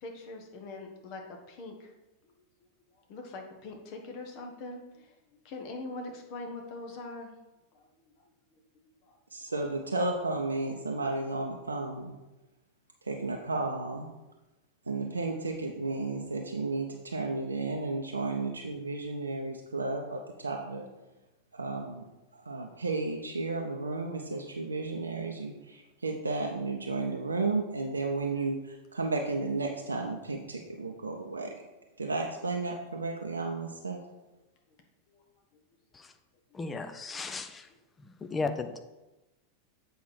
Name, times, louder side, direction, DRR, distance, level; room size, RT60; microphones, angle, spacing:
voice 1, 0.0-1.9 3.1-5.1 5.4-7.3 7.7-7.9 8.5-8.6 9.1-9.2 35.1-35.2 37.0-37.1, left 2 dB, 45° left, 2 dB, 1.3 m, -42 dB
voice 2, 9.3-12.2 13.0-14.1 14.9-20.9 21.5-22.0 22.3-31.5 32.0-34.0, right 3 dB, 80° right, 0 dB, 0.7 m, -33 dB
voice 3, 36.5-37.7 38.2-38.8, left 3 dB, 15° left, 8 dB, 0.6 m, -35 dB
7.9 x 4.6 x 4.3 m, 1.0 s
figure-of-eight pair, 90°, 0 cm